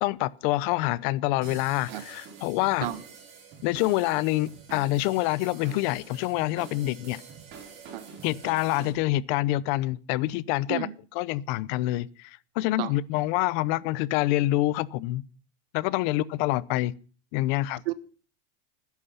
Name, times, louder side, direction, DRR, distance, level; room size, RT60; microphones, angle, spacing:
voice 1, 0.0-2.9 3.6-7.2 8.2-10.9 11.1-15.2 15.7-16.9 17.3-17.8, left 17 dB, 55° left, 0.8 m, -26 dB
sound 1, 1.4-8.9, right 6 dB, 45° right, 6.0 m, -46 dB
voice 2, 1.9-2.0 2.8-3.0 7.9-8.1 10.7-10.9 12.8-13.0 17.8-17.9, right 14 dB, 75° right, 1.4 m, -31 dB
20.0 x 10.5 x 5.7 m
supercardioid pair, 145°, 29 cm